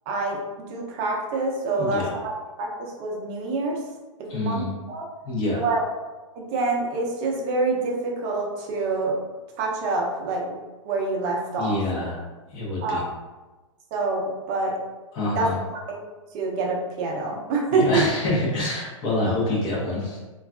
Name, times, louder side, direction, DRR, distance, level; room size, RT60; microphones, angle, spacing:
voice 1, 0.1-3.8 4.2-5.0 5.5-5.8 6.3-9.2 9.6-10.6 10.8-11.8 12.8-13.0 13.9-14.8 15.2-16.0 16.3-18.0, right 3 dB, 30° right, -1 dB, 0.6 m, -26 dB
voice 2, 1.7-2.2 4.3-4.7 5.2-5.6 11.6-12.2 12.5-13.0 15.1-15.6 17.7-20.2, left 1 dB, 30° left, -4 dB, 0.7 m, -26 dB
3.2 x 2.3 x 2.3 m, 1.2 s
hypercardioid pair, 140°, 17 cm